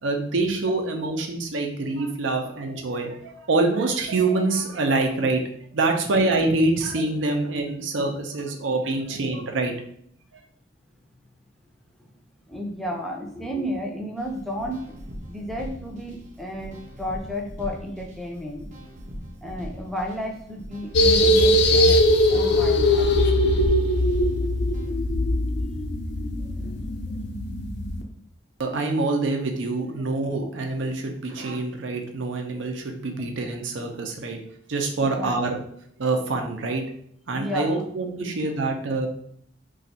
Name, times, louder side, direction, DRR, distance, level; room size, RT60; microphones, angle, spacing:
voice 1, 0.0-5.4 5.7-9.7 10.3-10.4 28.6-34.4 34.7-35.6 36.0-36.8 37.3-39.1, right 3 dB, 85° right, 3 dB, 0.5 m, -25 dB
voice 2, 12.5-14.8 15.3-18.7 19.4-22.0 22.3-23.5 24.4-24.5 26.4-26.8 35.0-35.3 37.3-37.8 38.2-38.3, equal, ahead, 1 dB, 0.4 m, -33 dB
sound 1, 14.2-24.9, equal, 40° right, 0.6 m, -41 dB
sound 2, 20.9-28.0, left 1 dB, 60° left, 0.4 m, -20 dB
2.5 x 2.3 x 4.0 m, 0.65 s
head